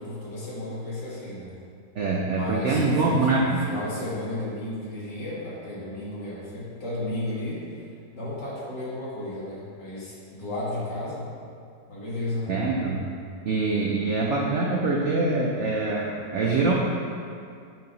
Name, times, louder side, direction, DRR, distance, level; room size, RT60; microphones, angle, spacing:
voice 1, 0.0-1.5 2.3-7.6 8.1-11.2 11.9-12.5, left 1 dB, 70° left, -9 dB, 2.3 m, -33 dB
voice 2, 2.0-3.6 12.5-13.0 13.5-16.7, right 3 dB, 85° right, -2 dB, 0.6 m, -24 dB
7.6 x 2.8 x 5.3 m, 2.3 s
omnidirectional pair, 1.9 m